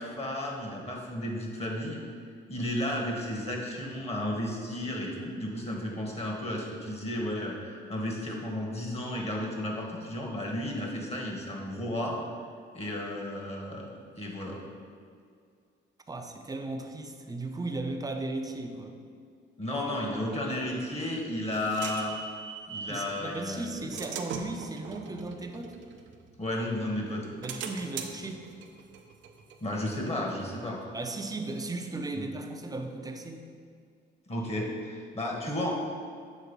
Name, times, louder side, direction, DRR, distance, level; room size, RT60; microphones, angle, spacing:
voice 1, 0.0-2.0 2.5-12.2 12.7-13.9 14.2-14.6 19.6-22.2 22.7-23.9 26.4-27.4 29.6-30.8 32.1-32.2 34.3-35.7, left 1 dB, 30° left, -1 dB, 1.5 m, -33 dB
voice 2, 16.1-19.0 22.9-25.8 27.4-28.5 30.9-33.4, right 2 dB, 20° right, 4 dB, 0.6 m, -36 dB
sound 1, 20.8-23.0 23.6-26.7 27.1-30.5, right 6 dB, 70° right, 0.6 m, -42 dB
7.2 x 3.9 x 5.3 m, 2.2 s
cardioid pair, 90°, 20 cm